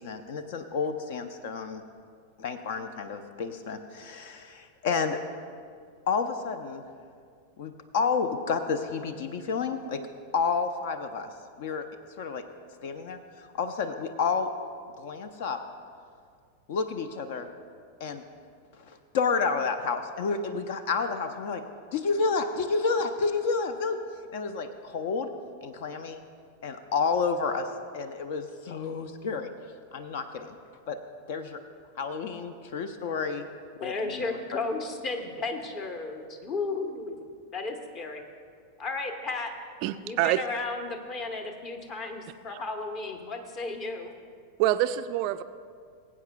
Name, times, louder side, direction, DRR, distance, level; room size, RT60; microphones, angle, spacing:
voice 1, 0.0-1.8 2.4-5.2 6.1-6.8 7.6-10.0 10.3-11.3 11.6-11.8 12.2-12.4 12.8-13.2 13.6-14.5 15.0-15.6 16.7-17.5 18.0-18.2 18.8-21.6 21.9-24.0 24.3-25.3 25.6-26.2 26.6-27.7 27.9-29.5 29.9-30.6 30.9-31.0 31.3-31.6 32.0-33.5 33.8-34.2, left 5 dB, 50° left, 9 dB, 0.5 m, -30 dB
voice 2, 33.8-37.2 37.5-38.2 38.8-39.5 40.0-44.1, left 3 dB, 35° left, 5 dB, 1.1 m, -34 dB
voice 3, 39.8-40.6 42.5-42.6 44.6-45.4, right 13 dB, 45° right, 12 dB, 0.3 m, -26 dB
21.0 x 8.4 x 2.3 m, 2.2 s
figure-of-eight pair, 90°, 0 cm